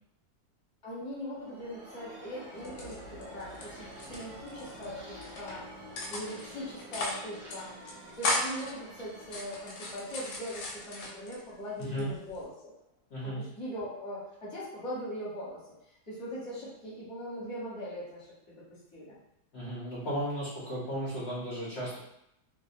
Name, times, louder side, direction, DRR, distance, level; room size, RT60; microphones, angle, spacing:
voice 1, 0.8-5.7 6.1-7.8 8.2-12.7 13.2-15.6 16.1-19.2, equal, 25° left, -8 dB, 0.8 m, -41 dB
sound 1, 1.0-12.5, equal, 60° right, 1.0 m, -48 dB
sound 2, 2.6-3.6 3.9-4.9 5.2-5.5 6.0-6.5 6.8-7.2 7.5-7.6 7.9-8.7 9.2-11.4 11.8-12.4, left 2 dB, 90° left, 1.2 m, -35 dB
voice 2, 11.8-12.1 13.1-13.4 19.5-22.0, equal, 55° left, -8 dB, 0.8 m, -35 dB
2.6 x 2.1 x 2.6 m, 0.78 s
omnidirectional pair, 1.7 m